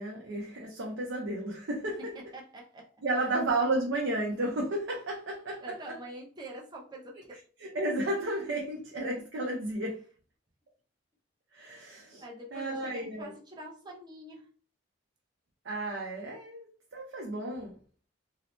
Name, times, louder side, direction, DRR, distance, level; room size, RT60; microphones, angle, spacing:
voice 1, 0.0-2.1 3.0-5.9 7.6-10.0 11.5-12.2 12.5-13.3 15.6-17.8, right 2 dB, 70° right, 0.5 m, -33 dB
voice 2, 2.0-2.9 5.6-7.4 12.2-14.5, right 1 dB, 20° right, 0.6 m, -45 dB
2.7 x 2.0 x 3.0 m
head